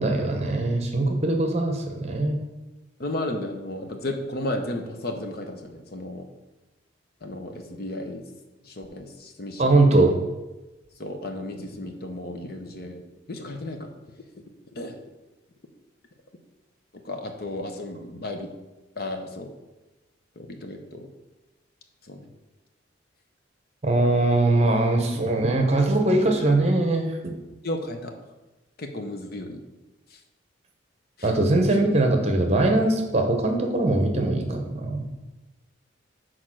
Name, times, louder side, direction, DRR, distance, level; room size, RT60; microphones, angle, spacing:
voice 1, 0.0-2.5 9.6-10.1 23.8-27.3 31.2-35.1, right 2 dB, 35° right, 3 dB, 1.0 m, -21 dB
voice 2, 3.0-6.3 7.2-8.2 8.6-9.8 11.0-13.9 14.7-15.0 16.9-18.5 19.0-19.5 20.4-21.1 22.0-22.3 27.6-28.1 28.8-29.6 30.1-30.2 31.2-31.3, left 1 dB, 50° left, 5 dB, 0.8 m, -34 dB
6.5 x 4.6 x 6.2 m, 1.1 s
head